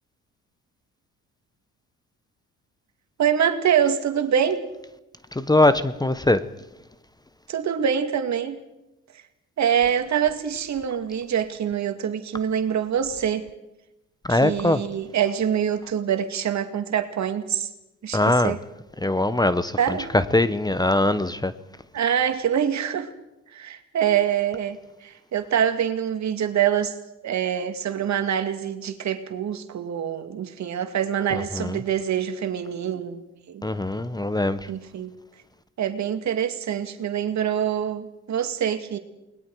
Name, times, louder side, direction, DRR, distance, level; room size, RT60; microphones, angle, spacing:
voice 1, 3.2-4.6 7.5-8.6 9.6-13.4 14.3-17.7 18.0-18.6 19.8-20.1 21.9-23.1 23.5-26.9 27.2-33.2 33.5-33.6 34.6-35.1 35.8-39.0, right 8 dB, 60° right, 2.2 m, -25 dB
voice 2, 5.3-6.4 14.2-14.8 18.1-18.5 19.0-21.5 31.3-31.8 33.6-34.7, left 2 dB, 10° left, 1.1 m, -22 dB
29.0 x 21.0 x 4.8 m
supercardioid pair, 65°, 32 cm